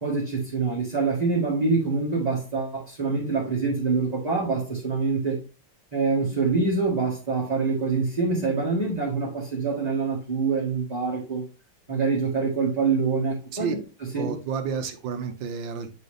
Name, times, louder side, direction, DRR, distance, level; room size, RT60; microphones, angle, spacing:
voice 1, 0.0-5.4 5.9-11.4 11.9-13.7 14.1-14.3, right 4 dB, 20° right, 1.4 m, -25 dB
voice 2, 14.2-15.9, right 6 dB, 70° right, 1.5 m, -30 dB
8.5 x 4.1 x 3.3 m
omnidirectional pair, 2.2 m